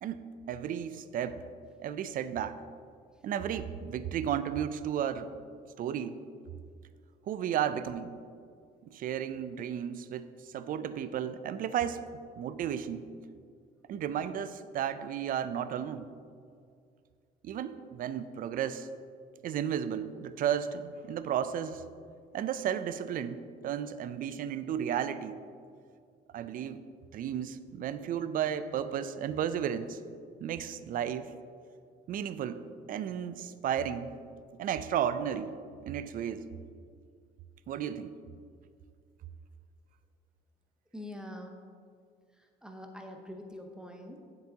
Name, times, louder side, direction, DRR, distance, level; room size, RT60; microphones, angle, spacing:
voice 1, 0.5-1.4 1.8-2.6 3.2-5.3 5.8-6.2 7.3-8.1 8.8-12.0 12.4-13.0 13.9-16.1 17.4-18.9 19.4-21.8 22.3-25.4 26.3-26.8 27.1-30.0 30.4-31.3 32.1-32.6 32.9-34.1 34.6-35.5 35.9-36.5 37.7-38.1, right 9 dB, 55° right, 12 dB, 0.4 m, -33 dB
voice 2, 40.9-41.6 42.3-44.2, left 1 dB, 5° right, 2 dB, 0.9 m, -45 dB
9.5 x 7.7 x 2.9 m, 2.3 s
cardioid pair, 110°, 17 cm